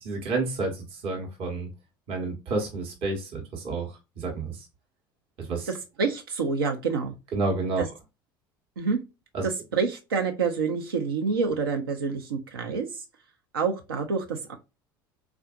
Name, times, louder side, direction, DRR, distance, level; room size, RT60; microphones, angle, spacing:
voice 1, 0.0-1.7 2.1-4.6 5.4-5.7 7.3-7.8 9.3-9.5, right 3 dB, 50° right, 1.1 m, -30 dB
voice 2, 6.0-7.1 7.8-7.9 8.8-9.0 9.4-12.9 13.5-14.6, right 5 dB, 80° right, 0.7 m, -27 dB
3.5 x 2.5 x 2.4 m
figure-of-eight pair, 65°, 12 cm